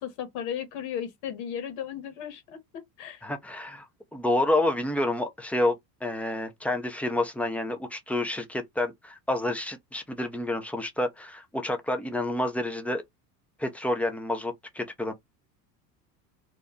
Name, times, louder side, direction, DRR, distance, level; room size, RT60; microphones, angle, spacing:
voice 1, 0.0-3.2, left 9 dB, 65° left, 1.3 m, -35 dB
voice 2, 3.2-3.8 4.1-5.7 6.0-13.0 13.6-15.1, left 1 dB, 5° left, 0.6 m, -29 dB
2.7 x 2.2 x 3.6 m
hypercardioid pair, 90°, 49 cm